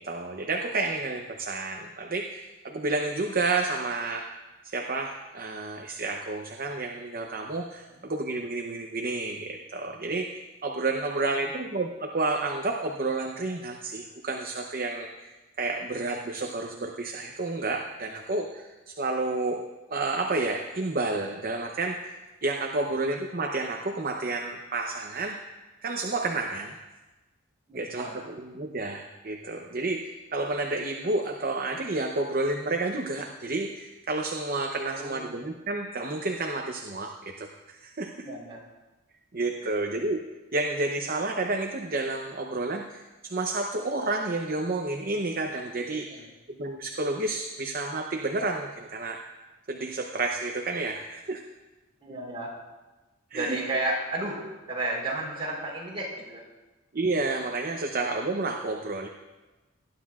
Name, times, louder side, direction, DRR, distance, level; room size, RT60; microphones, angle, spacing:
voice 1, 0.0-4.2 4.6-10.3 10.6-15.3 15.6-19.6 19.9-22.0 22.4-25.4 25.8-26.8 27.7-38.1 39.3-40.2 40.5-49.2 49.7-51.4 53.3-53.6 56.9-59.1, right 2 dB, 45° right, 2 dB, 0.7 m, -30 dB
voice 2, 11.1-11.4 27.7-28.2 34.9-35.3 38.2-38.6 39.6-39.7 46.1-46.3 52.0-52.5 53.3-56.4, right 2 dB, 25° right, -5 dB, 3.9 m, -33 dB
19.5 x 11.5 x 2.4 m, 1.1 s
head